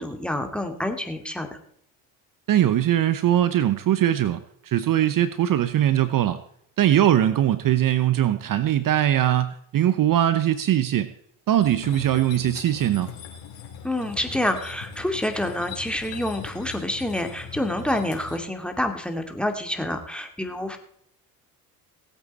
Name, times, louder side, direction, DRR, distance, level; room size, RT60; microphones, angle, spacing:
voice 1, 0.0-1.6 13.8-20.8, left 1 dB, ahead, 5 dB, 2.3 m, -28 dB
voice 2, 2.5-6.4 6.8-11.1 11.5-13.1, right 11 dB, 45° right, 13 dB, 0.9 m, -21 dB
sound 1, 11.6-18.4, left 7 dB, 65° left, 3.7 m, -40 dB
18.5 x 8.3 x 4.2 m, 0.68 s
hypercardioid pair, 65°, 46 cm